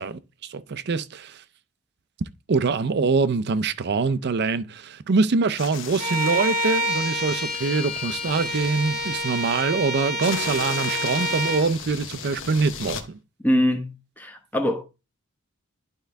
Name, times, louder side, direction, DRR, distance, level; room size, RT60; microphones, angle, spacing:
voice 1, 0.0-1.4 2.2-13.2, right 4 dB, 50° right, 0.5 m, -24 dB
sound 1, 5.6-9.6 10.2-13.0, left 6 dB, 60° left, 1.0 m, -37 dB
Bowed string instrument, 6.0-11.7, right 1 dB, 80° left, 2.2 m, -28 dB
voice 2, 13.4-14.8, equal, 10° left, 0.9 m, -23 dB
11.5 x 3.8 x 3.4 m
head